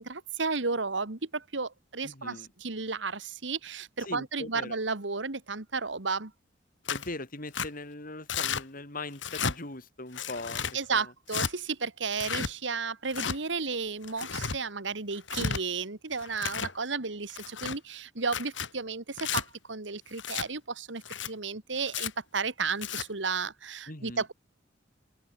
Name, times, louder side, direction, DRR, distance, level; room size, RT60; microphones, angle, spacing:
voice 1, 0.0-6.3 10.7-24.3, right 4 dB, 70° right, 1.9 m, -33 dB
voice 2, 2.0-2.5 4.1-4.8 6.9-10.6 10.9-11.1 23.9-24.2, left 2 dB, 50° left, 5.6 m, -40 dB
Tearing, 6.9-7.1 7.5-7.7 8.3-8.6 9.2-9.6 10.1-10.7 11.3-11.5 12.1-12.5 13.1-13.4 14.0-14.6 15.2-15.6 16.2-16.7 17.3-17.8 18.2-18.7 19.2-19.4 20.2-20.5 21.0-21.3 21.9-22.1 22.7-23.0, left 6 dB, 75° left, 3.2 m, -33 dB
head